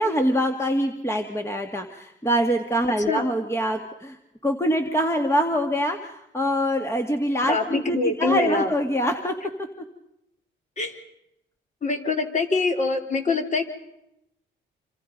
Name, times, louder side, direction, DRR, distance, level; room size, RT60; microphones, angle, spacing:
voice 1, 0.0-4.2 4.4-9.3, equal, 15° left, 4 dB, 1.9 m, -24 dB
voice 2, 7.5-8.7 10.8-11.0 11.8-13.6, left 3 dB, 40° left, 4 dB, 3.6 m, -24 dB
27.0 x 26.5 x 5.3 m, 0.83 s
cardioid pair, 90°, 20 cm